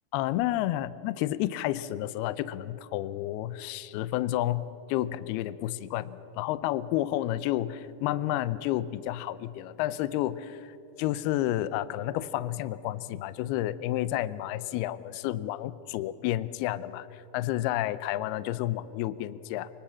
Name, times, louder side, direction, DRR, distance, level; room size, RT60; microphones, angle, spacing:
voice 1, 0.1-19.7, left 14 dB, 80° left, 15 dB, 2.4 m, -31 dB
25.0 x 24.5 x 7.2 m, 2.8 s
omnidirectional pair, 5.1 m